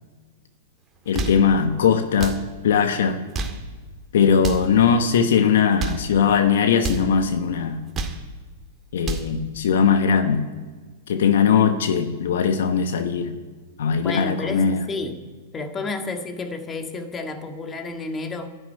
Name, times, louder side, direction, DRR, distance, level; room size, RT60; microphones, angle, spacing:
sound 1, 0.9-1.5 2.1-2.5 3.2-3.7 4.3-4.7 5.6-6.1 6.8-7.1 7.7-8.3 8.8-9.3, right 3 dB, 25° right, 1.9 m, -30 dB
voice 1, 1.1-2.4 2.6-3.2 4.1-7.8 8.9-10.4 11.1-13.3 13.8-14.8, left 6 dB, 70° left, 8 dB, 1.1 m, -19 dB
voice 2, 14.0-15.2 15.5-18.5, left 3 dB, 20° left, 5 dB, 1.8 m, -31 dB
11.0 x 9.9 x 9.5 m, 1.4 s
hypercardioid pair, 115°, 0 cm